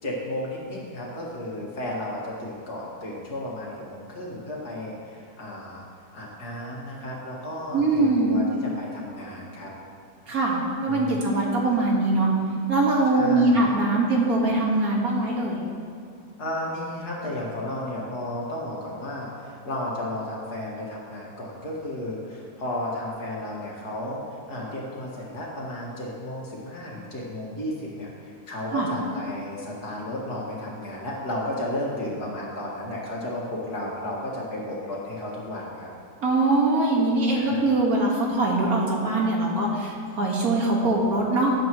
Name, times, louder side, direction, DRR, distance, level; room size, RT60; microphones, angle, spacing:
voice 1, 0.0-5.8 6.1-9.7 10.8-11.2 13.1-13.7 16.4-24.2 24.5-35.9 37.3-37.7, left 1 dB, 75° left, -4 dB, 2.6 m, -33 dB
voice 2, 7.7-8.4 10.3-12.3 12.7-15.6 28.7-28.9 36.2-41.5, right 2 dB, 65° right, -2 dB, 2.2 m, -22 dB
17.5 x 8.4 x 3.1 m, 2.5 s
omnidirectional pair, 1.7 m